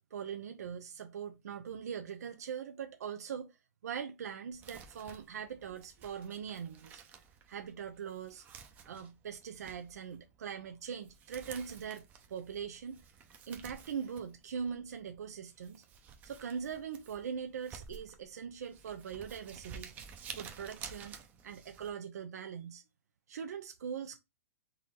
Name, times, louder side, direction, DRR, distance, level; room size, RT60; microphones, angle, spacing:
voice 1, 0.1-3.6 3.8-7.0 7.5-8.4 8.9-13.0 13.5-15.8 16.2-19.9 20.4-22.8 23.3-24.2, right 7 dB, 85° right, 0.7 m, -41 dB
Crumpling crinkling, 4.5-21.9, right 6 dB, 20° right, 0.6 m, -52 dB
3.8 x 2.9 x 4.6 m
hypercardioid pair, 160°, 8 cm